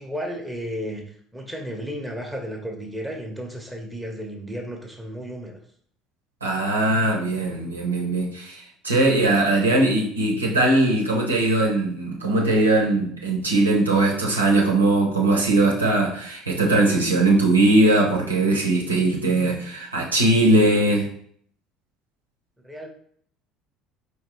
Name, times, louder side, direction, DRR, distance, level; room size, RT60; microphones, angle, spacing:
voice 1, 0.0-5.6 22.6-22.9, equal, 5° right, 0 dB, 1.0 m, -33 dB
voice 2, 6.4-21.1, right 2 dB, 85° right, -2 dB, 0.8 m, -20 dB
4.6 x 3.3 x 3.0 m, 0.62 s
figure-of-eight pair, 60°, 0 cm